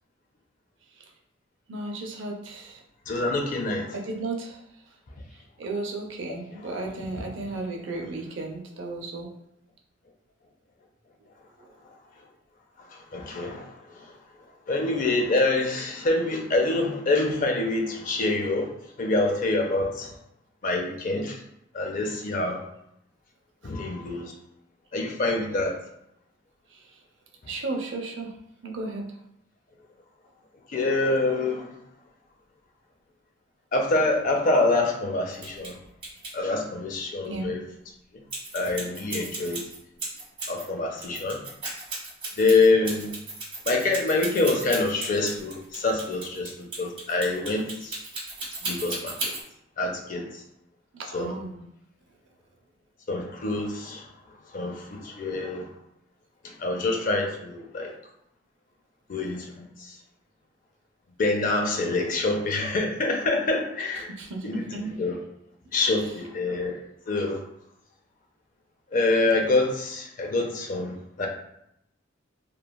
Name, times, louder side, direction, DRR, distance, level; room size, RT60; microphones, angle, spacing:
voice 1, 1.7-2.8 3.9-4.6 5.6-9.3 26.7-26.8 27.5-28.3 28.6-29.0 37.3-37.5 51.1-51.6 64.0-64.8 66.0-66.1, right 2 dB, 75° right, 0 dB, 0.5 m, -34 dB
voice 2, 3.1-3.9 7.2-7.3 13.1-13.7 14.7-18.7 19.0-20.1 20.6-21.4 21.7-22.6 23.6-24.3 24.9-25.7 30.7-31.7 33.7-35.7 36.3-37.6 38.5-39.6 40.5-41.4 42.4-43.1 43.7-48.0 48.6-49.3 49.8-50.3 51.1-51.3 53.1-54.0 54.5-55.7 56.6-57.9 59.1-59.7 61.2-64.1 64.4-65.2 65.7-66.8 67.1-67.4 68.9-71.3, left 2 dB, 45° left, 2 dB, 0.5 m, -26 dB
sound 1, 35.3-35.7 36.0-36.3 38.3-40.6 41.0-49.4, right 3 dB, 30° right, 1.2 m, -35 dB
3.1 x 2.2 x 2.2 m, 0.78 s
head